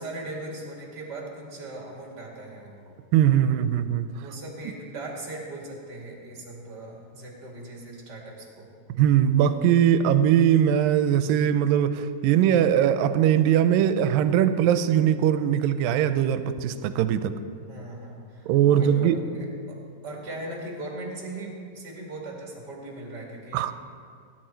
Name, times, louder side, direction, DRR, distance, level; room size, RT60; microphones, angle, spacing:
voice 1, 0.0-2.9 4.2-8.7 17.7-19.8 20.0-23.6, right 2 dB, 35° right, -2 dB, 2.4 m, -39 dB
voice 2, 3.1-4.1 9.0-17.3 18.5-19.2 23.5-23.7, right 10 dB, 85° right, 11 dB, 2.3 m, -21 dB
18.0 x 10.5 x 4.4 m, 2.2 s
omnidirectional pair, 4.1 m